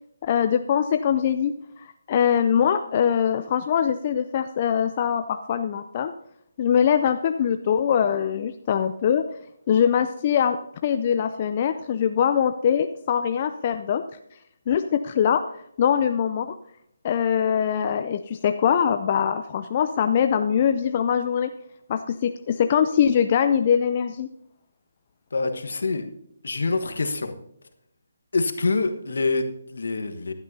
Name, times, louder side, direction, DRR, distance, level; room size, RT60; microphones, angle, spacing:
voice 1, 0.2-1.5 1.8-6.1 6.6-9.2 9.7-10.6 10.8-14.0 14.7-15.4 15.8-16.6 17.0-21.5 21.9-24.3, left 8 dB, 35° left, 8 dB, 0.4 m, -22 dB
voice 2, 25.3-26.0 26.4-27.3 28.3-30.3, left 3 dB, 70° left, 7 dB, 1.3 m, -25 dB
15.5 x 11.5 x 2.8 m, 0.74 s
figure-of-eight pair, 150°, 0 cm